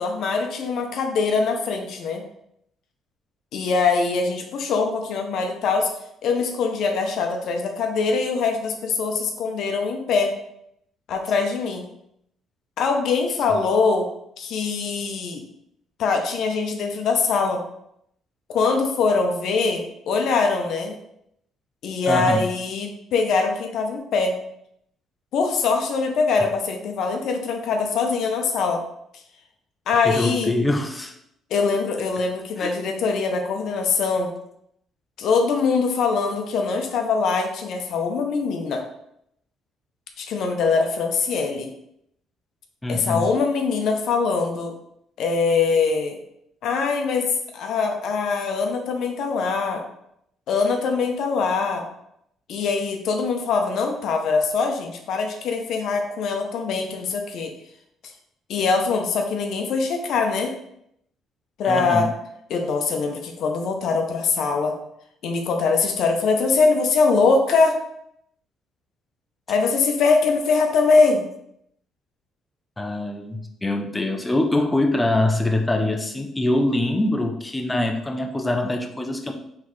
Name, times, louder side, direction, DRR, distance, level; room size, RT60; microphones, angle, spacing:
voice 1, 0.0-2.2 3.5-5.9 6.2-10.3 11.1-11.9 12.8-14.1 14.4-15.4 16.0-17.6 18.5-20.9 21.8-24.3 25.3-28.8 29.9-30.6 31.5-34.3 35.2-38.8 40.2-41.7 42.9-44.7 45.2-46.2 46.6-47.3 47.5-49.8 50.5-51.8 52.5-57.5 58.5-60.5 61.6-62.1 62.5-64.7 65.2-67.8 69.5-71.3, left 4 dB, 70° left, 3 dB, 0.6 m, -22 dB
voice 2, 22.1-22.4 30.0-31.1 32.6-32.7 42.8-43.3 61.6-62.1 72.8-79.3, left 1 dB, 10° left, 4 dB, 0.5 m, -24 dB
4.0 x 3.2 x 3.1 m, 0.76 s
cardioid pair, 115°, 0 cm